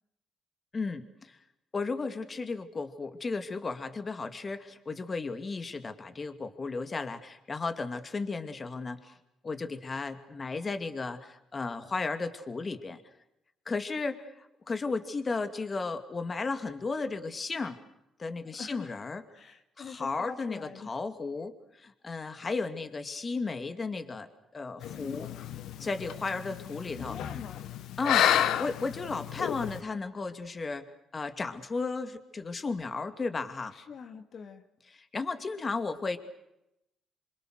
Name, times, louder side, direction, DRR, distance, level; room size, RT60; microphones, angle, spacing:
voice 1, 0.7-1.4 1.7-9.1 9.4-13.0 13.7-17.8 18.2-19.2 19.8-25.3 25.8-27.2 28.0-33.7 35.1-36.2, left 4 dB, 35° left, 8 dB, 2.6 m, -34 dB
voice 2, 18.5-19.0 19.3-21.0 27.0-27.7 33.7-34.7, left 6 dB, 55° left, 6 dB, 2.4 m, -44 dB
sound 1, 24.8-29.8, left 10 dB, 85° left, 1.1 m, -31 dB
27.5 x 25.0 x 6.6 m, 0.86 s
cardioid pair, 90°, 0 cm